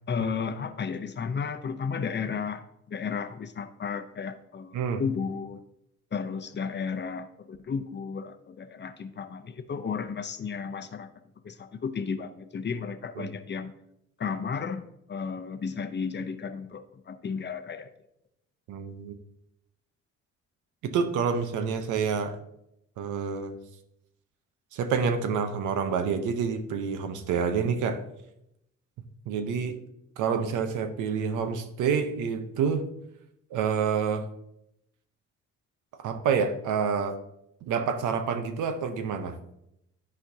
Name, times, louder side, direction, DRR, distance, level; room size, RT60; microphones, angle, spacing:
voice 1, 0.1-5.6 6.1-11.1 11.4-13.7 14.2-14.8 15.1-17.9, left 6 dB, 35° left, 9 dB, 0.7 m, -33 dB
voice 2, 18.7-19.2 20.8-22.4 23.0-23.6 24.7-28.0 29.3-29.8 30.2-32.9 33.5-34.3 36.0-37.2 37.6-39.4, right 6 dB, 90° right, 9 dB, 0.8 m, -28 dB
13.0 x 4.3 x 2.7 m, 0.79 s
cardioid pair, 90°, 30 cm